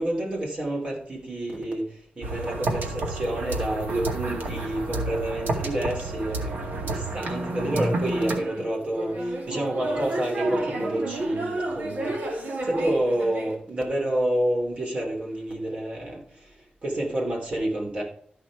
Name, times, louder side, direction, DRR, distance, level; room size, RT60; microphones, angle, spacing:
voice 1, 0.0-18.0, right 1 dB, 40° right, 0 dB, 3.2 m, -29 dB
sound 1, 2.2-8.4, right 2 dB, 85° right, 2.1 m, -30 dB
sound 2, 8.2-13.5, right 2 dB, 65° right, 2.2 m, -31 dB
13.0 x 5.8 x 4.8 m, 0.62 s
wide cardioid pair, 170°, 3 cm